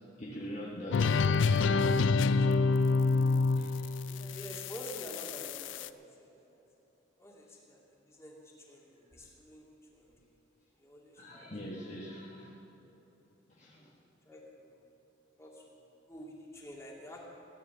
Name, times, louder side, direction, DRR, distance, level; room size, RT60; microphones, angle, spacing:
voice 1, 0.2-1.3 3.5-4.4 11.2-12.6 13.5-13.9, equal, 40° left, -3 dB, 1.3 m, -44 dB
sound 1, 0.9-5.9, left 4 dB, 70° left, 0.4 m, -27 dB
voice 2, 4.1-5.9 6.2-6.6 7.2-7.8 8.1-8.4 8.7-9.6 9.9-10.1 10.8-11.5 12.7-13.0 14.3-14.8 15.4-15.8 16.1-17.2, equal, 15° left, -3 dB, 2.4 m, -48 dB
16.5 x 9.8 x 7.1 m, 2.9 s
head